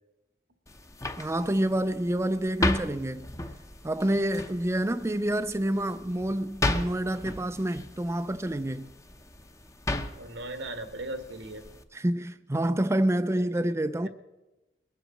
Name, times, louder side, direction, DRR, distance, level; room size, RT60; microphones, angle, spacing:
sound 1, 0.7-11.8, left 1 dB, 15° left, 0.8 m, -35 dB
voice 1, 1.2-3.3 3.8-8.9 11.9-14.1, right 1 dB, 15° right, 0.4 m, -28 dB
voice 2, 10.2-11.6 13.3-13.6, right 1 dB, 90° right, 1.7 m, -38 dB
21.5 x 7.9 x 7.7 m
head